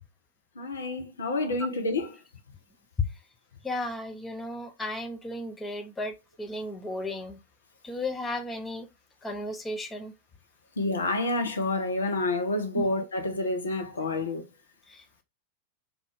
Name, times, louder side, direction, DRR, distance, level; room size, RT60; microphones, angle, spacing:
voice 1, 0.6-2.1 10.8-14.4, left 2 dB, 70° left, 0.7 m, -28 dB
voice 2, 3.6-7.4 7.8-8.9 9.2-10.1 12.7-12.8 14.9-15.2, left 2 dB, 15° left, 0.6 m, -34 dB
3.6 x 2.4 x 3.3 m
figure-of-eight pair, 90°, 0 cm